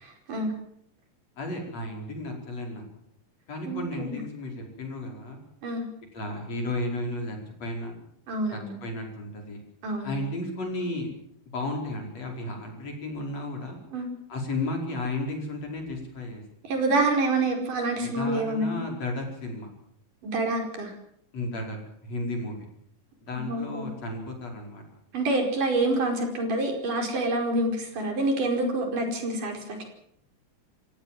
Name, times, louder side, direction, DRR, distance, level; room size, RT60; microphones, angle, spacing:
voice 1, 0.0-0.5 3.6-4.2 5.6-5.9 8.3-8.8 9.8-10.2 13.9-14.1 16.6-18.9 20.2-20.9 23.3-23.9 25.1-29.8, right 2 dB, 70° right, 3 dB, 6.5 m, -27 dB
voice 2, 1.4-2.8 3.5-5.4 6.1-7.9 8.5-9.6 10.0-11.1 11.5-13.8 14.3-16.4 18.0-19.7 21.3-21.8 22.0-22.7 23.3-24.8, left 2 dB, 50° left, 2 dB, 6.2 m, -33 dB
27.0 x 16.5 x 7.6 m, 0.68 s
omnidirectional pair, 3.9 m